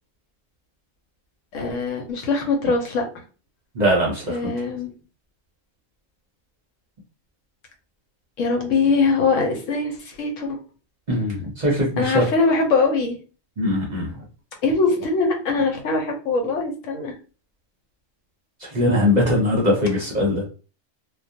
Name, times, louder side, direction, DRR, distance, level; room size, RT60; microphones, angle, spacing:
voice 1, 1.5-3.0 4.3-4.9 8.4-10.6 12.0-13.2 14.6-17.1, left 4 dB, 80° left, 3 dB, 1.0 m, -22 dB
voice 2, 3.8-4.4 11.1-12.3 13.6-14.1 18.7-20.4, left 1 dB, 45° right, -3 dB, 0.6 m, -21 dB
2.3 x 2.2 x 2.6 m, 0.35 s
omnidirectional pair, 1.3 m